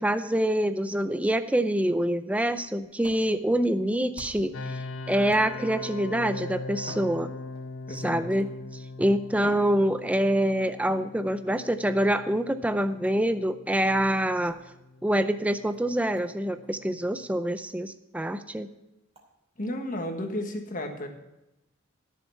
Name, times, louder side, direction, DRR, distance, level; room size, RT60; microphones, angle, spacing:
voice 1, 0.0-4.5 5.1-7.3 7.9-8.5 9.0-14.6 15.0-18.7, right 1 dB, 5° right, 10 dB, 0.4 m, -25 dB
sound 1, 2.5-4.6 5.3-5.9 6.8-7.9 8.7-8.8 9.3-10.4 10.9-11.6 13.0-13.3 14.4-14.6 15.3-15.4 15.7-15.8 16.2-16.3 16.6-16.7 17.1-17.2 17.7-17.8 18.2-18.3 19.1-19.3, right 1 dB, 25° right, 2.7 m, -48 dB
sound 2, 4.5-17.4, left 2 dB, 65° left, 0.8 m, -41 dB
voice 2, 7.9-8.2 19.6-21.1, left 1 dB, 40° left, 4 dB, 1.5 m, -33 dB
13.0 x 7.1 x 5.7 m, 0.94 s
head